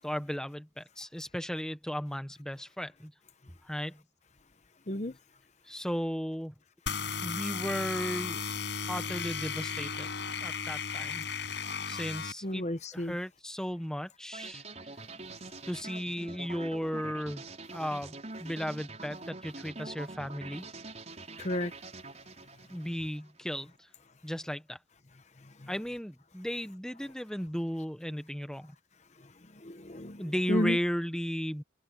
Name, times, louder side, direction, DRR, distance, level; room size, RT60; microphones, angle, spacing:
voice 1, 0.0-3.1 3.6-4.0 5.6-6.5 7.2-8.4 8.9-10.1 10.4-11.2 11.9-12.6 12.9-14.6 15.7-17.4 17.7-20.7 22.7-23.9 24.2-24.8 25.7-28.7 30.2-31.6, equal, 5° left, 0.9 m, -35 dB
sound 1, 6.9-12.3, left 6 dB, 60° left, 7.8 m, -35 dB
voice 2, 12.4-13.1 21.4-21.7 25.4-25.7 29.2-30.8, left 1 dB, 35° left, 1.0 m, -33 dB
sound 2, 14.3-23.4, right 3 dB, 35° right, 6.0 m, -45 dB
head